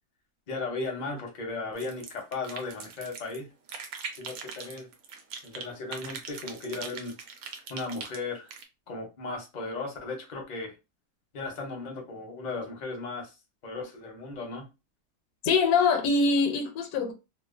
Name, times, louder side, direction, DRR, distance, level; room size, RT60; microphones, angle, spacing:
voice 1, 0.5-3.5 4.2-4.9 5.4-7.2 7.7-8.5 8.9-10.7 11.3-13.3 13.6-14.7, left 3 dB, 45° left, 0.6 m, -36 dB
sound 1, 1.8-3.4 3.7-5.6 5.9-8.6, right 6 dB, 70° right, 0.9 m, -41 dB
voice 2, 15.4-17.1, left 4 dB, 75° left, 1.1 m, -23 dB
2.7 x 2.1 x 2.5 m
omnidirectional pair, 1.7 m